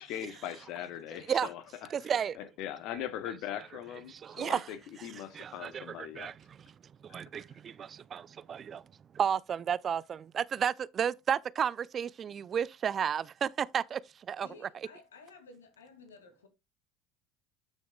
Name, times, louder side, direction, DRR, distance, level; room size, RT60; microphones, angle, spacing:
voice 1, 0.0-1.6 2.6-6.3 7.1-7.2, left 11 dB, 60° left, 1.0 m, -40 dB
voice 2, 1.1-1.5 1.9-2.4 3.5-3.7 4.1-6.7 7.0-8.8 9.1-14.5, right 8 dB, 35° right, 0.4 m, -33 dB
voice 3, 14.4-16.5, left 4 dB, 85° left, 2.2 m, -54 dB
12.0 x 6.3 x 2.3 m
hypercardioid pair, 70°, 0 cm